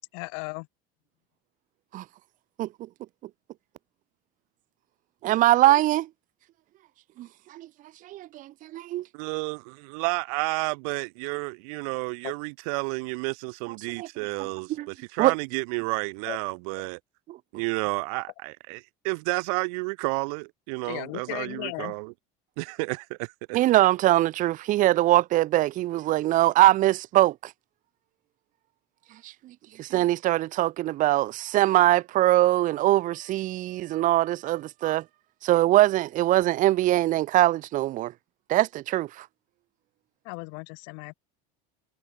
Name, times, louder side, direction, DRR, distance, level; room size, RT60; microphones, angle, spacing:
voice 1, 0.1-0.7 12.2-12.3 16.3-16.4 16.8-16.9 20.8-21.9 40.2-41.2, left 40 dB or more, 75° left, 4.6 m, -36 dB
voice 2, 5.2-6.1 7.2-7.7 8.0-9.0 13.7-14.1 14.4-14.9 15.2-15.3 17.3-17.4 23.5-27.5 29.2-35.0 35.4-38.1 38.5-39.3, right 15 dB, 45° right, 0.8 m, -22 dB
voice 3, 9.2-9.6 9.9-14.7 15.2-17.0 17.5-18.8 19.0-22.0 22.6-23.0, right 33 dB, 85° right, 1.2 m, -30 dB
cardioid pair, 135°, 18 cm